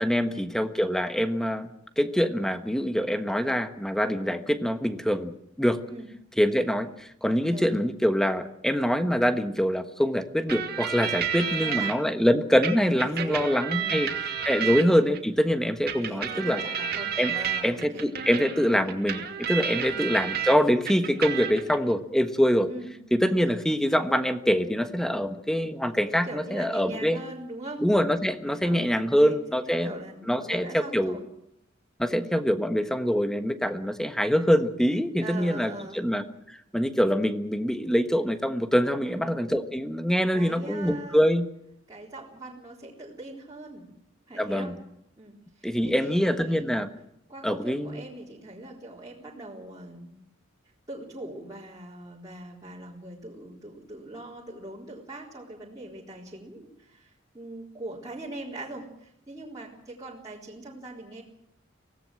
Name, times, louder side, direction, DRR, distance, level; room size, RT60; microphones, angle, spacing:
voice 1, 0.0-1.7 2.0-5.3 5.6-5.8 6.4-14.1 14.4-16.6 17.2-17.3 17.6-22.7 23.1-27.2 27.8-29.9 30.3-31.2 32.0-36.2 36.7-41.5 44.4-44.7 45.6-46.9 47.4-48.0, equal, 5° left, 9 dB, 1.3 m, -24 dB
voice 2, 7.5-7.8 11.4-12.0 12.8-14.0 14.6-14.9 16.0-18.0 19.7-20.3 22.7-23.0 26.2-27.8 28.5-31.2 32.1-32.3 35.2-36.0 39.0-39.4 40.3-41.2 41.9-43.9 44.3-44.7 45.2-46.7 47.3-50.2 50.9-61.2, right 2 dB, 20° right, -6 dB, 4.0 m, -41 dB
sound 1, 10.5-11.9 12.6-15.2 15.9-20.5 20.8-21.8, right 8 dB, 50° right, 2.5 m, -31 dB
24.5 x 17.5 x 7.7 m, 0.78 s
head